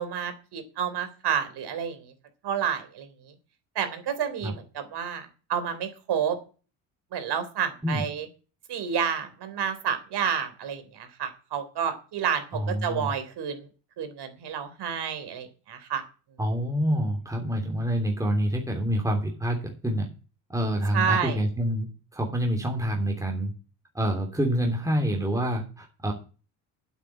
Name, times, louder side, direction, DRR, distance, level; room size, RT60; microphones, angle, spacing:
voice 1, 0.0-2.0 2.4-3.1 3.8-6.4 7.1-8.3 8.7-13.6 14.0-16.0 20.9-21.4, right 8 dB, 60° right, 10 dB, 3.6 m, -30 dB
voice 2, 12.5-13.1 16.4-20.1 20.5-23.5 23.9-26.1, equal, 5° right, 1 dB, 3.3 m, -27 dB
8.8 x 8.4 x 7.7 m, 0.35 s
supercardioid pair, 90°, 45 cm